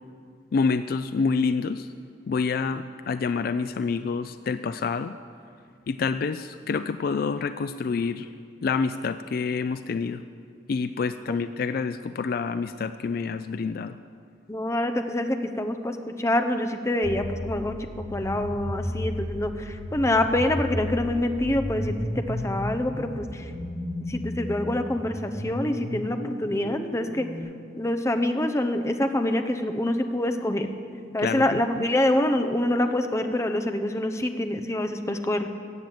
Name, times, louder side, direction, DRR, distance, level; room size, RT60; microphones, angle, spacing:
voice 1, 0.5-1.9 2.3-5.1 5.9-8.3 8.6-10.2 10.7-14.0 31.2-31.9, left 5 dB, 50° left, 11 dB, 0.3 m, -27 dB
voice 2, 14.5-17.8 18.1-23.4 24.1-27.3 27.8-30.7 31.1-35.5, left 1 dB, 15° left, 7 dB, 0.7 m, -26 dB
sound 1, 17.0-27.4, left 1 dB, 80° left, 3.1 m, -34 dB
14.5 x 7.7 x 9.0 m, 2.3 s
head